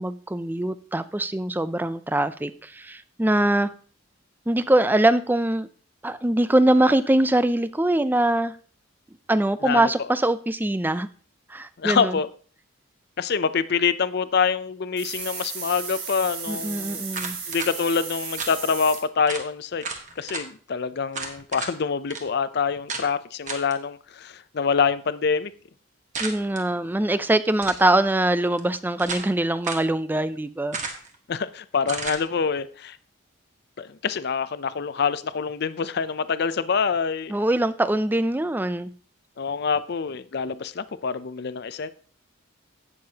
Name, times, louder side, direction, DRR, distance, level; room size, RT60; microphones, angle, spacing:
voice 1, 0.0-3.7 4.5-5.7 6.0-8.6 9.3-11.1 11.5-12.2 16.5-17.4 26.2-30.8 37.3-38.9, right 1 dB, 10° right, 13 dB, 0.4 m, -23 dB
voice 2, 11.8-12.3 13.2-17.1 17.5-19.8 20.2-25.5 31.3-33.0 33.8-37.3 39.4-41.9, left 5 dB, 55° left, 14 dB, 0.5 m, -26 dB
sound 1, 15.0-19.0, right 6 dB, 80° right, 6.2 m, -34 dB
sound 2, 17.1-17.7 18.4-18.6 18.9-19.0 19.3-19.5 19.8-20.4 21.1-21.7 22.1-22.2 22.9-23.1 23.5-23.7 26.1-26.6 27.5-27.9 28.6-29.3 29.6-29.9 30.7-31.1 31.9-32.2, right 4 dB, 40° right, 1.4 m, -33 dB
17.0 x 6.7 x 2.8 m, 0.42 s
head